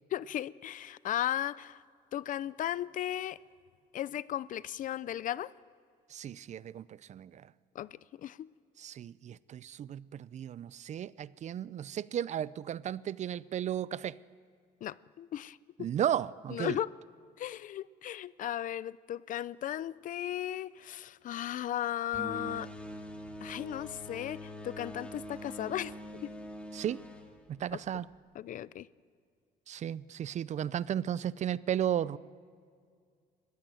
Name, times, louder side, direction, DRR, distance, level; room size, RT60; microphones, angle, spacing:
voice 1, 0.1-1.8 2.1-3.4 3.9-5.5 7.7-8.5 14.8-15.9 16.5-16.9 17.4-22.7 23.4-26.0 26.2-26.3 27.7-27.8 28.4-28.9, left 12 dB, 50° left, 20 dB, 0.5 m, -36 dB
voice 2, 6.1-7.5 8.8-14.1 15.8-16.8 26.7-27.0 27.5-28.1 29.7-32.2, right 10 dB, 45° right, 20 dB, 0.5 m, -34 dB
sound 1, 22.1-28.2, equal, 5° left, 2.1 m, -44 dB
21.0 x 15.0 x 9.3 m, 2.2 s
cardioid pair, 110°, 17 cm